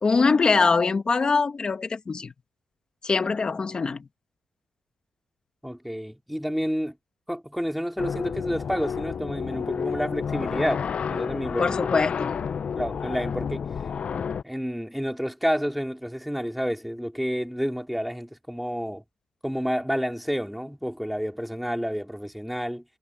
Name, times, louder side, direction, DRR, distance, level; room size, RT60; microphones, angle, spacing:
voice 1, 0.0-2.3 3.0-4.1 11.6-12.4, left 4 dB, 35° left, 1.8 m, -23 dB
voice 2, 5.6-7.0 7.3-11.8 12.8-13.6 14.4-19.0 19.4-22.8, equal, ahead, 2.8 m, -29 dB
sound 1, 8.0-14.4, left 6 dB, 50° left, 0.6 m, -30 dB
cardioid pair, 100°, 3 cm